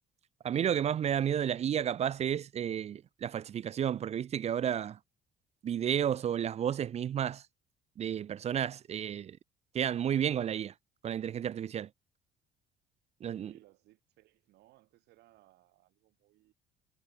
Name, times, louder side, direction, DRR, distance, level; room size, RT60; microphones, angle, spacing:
voice 1, 0.4-5.0 5.6-7.4 8.0-9.4 9.7-10.7 11.0-11.9 13.2-13.5, right 9 dB, 40° right, 0.5 m, -32 dB
voice 2, 13.3-16.5, right 17 dB, 80° right, 6.9 m, -63 dB
cardioid pair, 110°, 17 cm